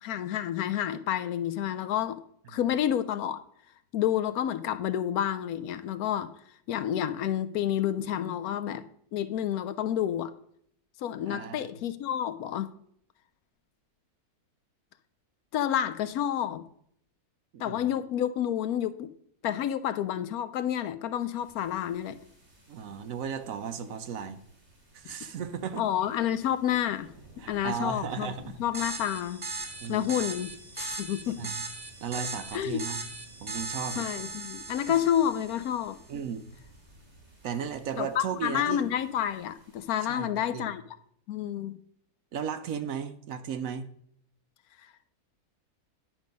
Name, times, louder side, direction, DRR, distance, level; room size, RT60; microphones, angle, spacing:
voice 1, 0.0-2.2 2.5-3.4 3.9-6.3 6.7-8.8 9.1-10.3 11.0-12.7 15.5-16.6 17.6-19.1 19.4-22.2 25.0-25.1 25.8-27.1 27.5-28.3 28.6-29.5 29.9-30.5 30.8-31.5 32.5-32.8 34.0-36.0 38.0-40.8 41.3-41.8, left 10 dB, 75° left, 13 dB, 1.0 m, -29 dB
voice 2, 11.3-11.7 17.5-18.0 22.7-24.4 24.9-25.8 27.4-28.6 29.8-30.1 31.4-31.6 32.0-33.0 33.4-34.1 34.9-35.0 36.1-36.5 37.4-38.8 40.1-40.7 42.3-43.9, right 7 dB, 65° right, 10 dB, 1.0 m, -35 dB
sound 1, 21.4-39.9, right 2 dB, 45° right, 2.9 m, -56 dB
sound 2, 28.7-35.9, right 2 dB, 20° right, 0.7 m, -39 dB
10.5 x 5.4 x 5.2 m, 0.67 s
omnidirectional pair, 1.6 m